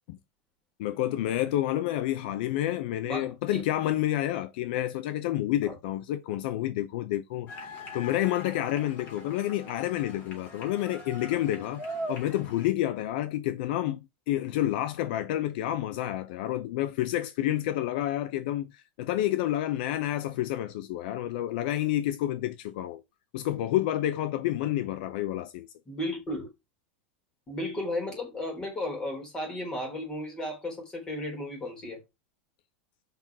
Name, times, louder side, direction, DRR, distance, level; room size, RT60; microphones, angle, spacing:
voice 1, 0.8-7.7 7.9-11.8 12.1-23.0 23.3-25.7, left 13 dB, 55° left, 0.7 m, -29 dB
voice 2, 3.0-3.6 5.6-5.8 25.9-26.5 27.5-32.0, left 1 dB, 10° left, 3.7 m, -34 dB
sound 1, 7.5-12.6, equal, 30° left, 3.6 m, -41 dB
6.9 x 5.7 x 6.0 m
supercardioid pair, 175°, 6 cm